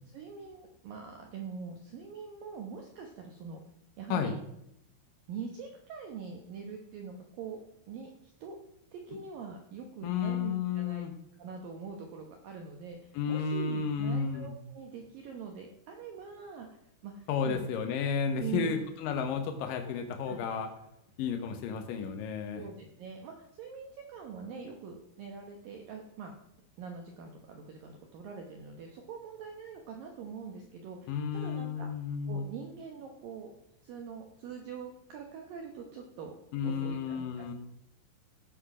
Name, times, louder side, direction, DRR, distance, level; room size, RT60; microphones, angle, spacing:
voice 1, 0.1-3.6 4.0-4.3 5.3-7.6 7.9-8.6 8.9-11.0 11.4-16.7 17.0-17.7 18.4-18.9 20.3-20.4 22.5-26.3 26.8-31.9 32.3-33.5 33.8-36.3 36.6-37.5, right 6 dB, 75° right, 2 dB, 2.1 m, -43 dB
voice 2, 10.0-11.1 13.1-14.5 17.3-20.7 21.2-22.6 31.1-32.5 36.5-37.5, left 6 dB, 90° left, 6 dB, 1.9 m, -32 dB
16.0 x 6.2 x 6.0 m, 0.83 s
omnidirectional pair, 5.5 m